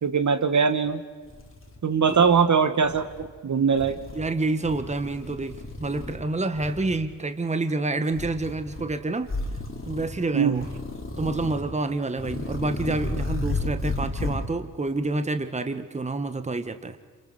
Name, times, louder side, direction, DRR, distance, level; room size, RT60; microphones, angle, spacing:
voice 1, 0.0-1.0 1.8-4.0 10.3-10.6, right 6 dB, 40° right, 9 dB, 1.5 m, -21 dB
sound 1, 0.9-1.0 1.3-2.4 2.8-3.3 3.7-4.3 4.6-6.2 6.5-7.1 8.1-8.9 9.2-10.2 10.5-11.7 12.1-14.5, left 2 dB, 30° left, 3.4 m, -33 dB
voice 2, 4.1-9.3 9.9-10.7 11.2-17.0, right 2 dB, 15° right, 9 dB, 1.4 m, -28 dB
27.5 x 26.0 x 4.9 m, 1.5 s
hypercardioid pair, 45°, 44 cm